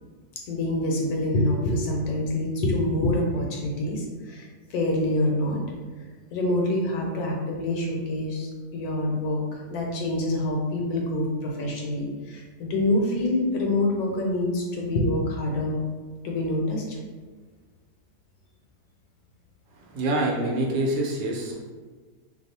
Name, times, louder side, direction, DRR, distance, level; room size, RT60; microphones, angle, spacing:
voice 1, 0.5-5.6 6.3-15.8 16.2-17.0, left 1 dB, 70° left, -1 dB, 1.0 m, -26 dB
voice 2, 19.8-21.6, right 1 dB, 85° right, -2 dB, 1.2 m, -26 dB
2.9 x 2.0 x 4.0 m, 1.4 s
omnidirectional pair, 1.8 m